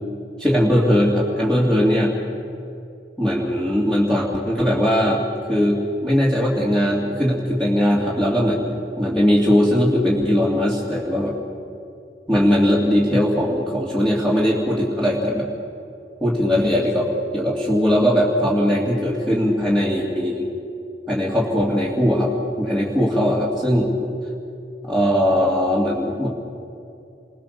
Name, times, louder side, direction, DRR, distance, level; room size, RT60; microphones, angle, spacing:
voice 1, 0.4-2.1 3.2-5.2 5.5-11.3 12.3-15.5 16.2-20.5 21.1-22.3 22.6-24.1 24.8-26.3, equal, 5° left, -5 dB, 2.8 m, -19 dB
29.0 x 22.0 x 7.0 m, 2.6 s
head